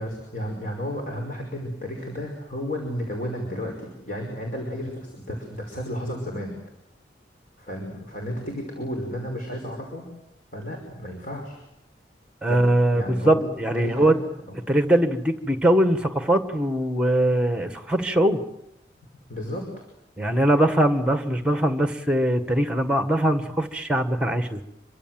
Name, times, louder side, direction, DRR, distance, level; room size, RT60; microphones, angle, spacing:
voice 1, 0.0-6.5 7.6-10.0 10.5-11.6 12.5-13.5 13.7-14.2 19.3-19.7, equal, 45° left, 1 dB, 5.5 m, -33 dB
voice 2, 12.4-14.1 14.7-18.4 20.2-24.6, right 1 dB, 5° right, 9 dB, 1.7 m, -21 dB
27.0 x 24.0 x 7.8 m, 0.83 s
head